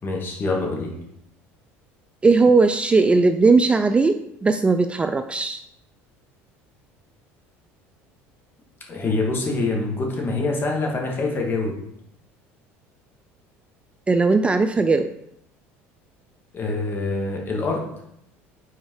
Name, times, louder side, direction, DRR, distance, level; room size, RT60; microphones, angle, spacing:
voice 1, 0.0-0.9 8.9-11.8 16.5-17.8, left 3 dB, 35° left, 0 dB, 2.3 m, -25 dB
voice 2, 2.2-5.6 14.1-15.1, right 3 dB, 20° right, 9 dB, 0.4 m, -18 dB
6.5 x 4.4 x 4.8 m, 0.77 s
supercardioid pair, 85°, 6 cm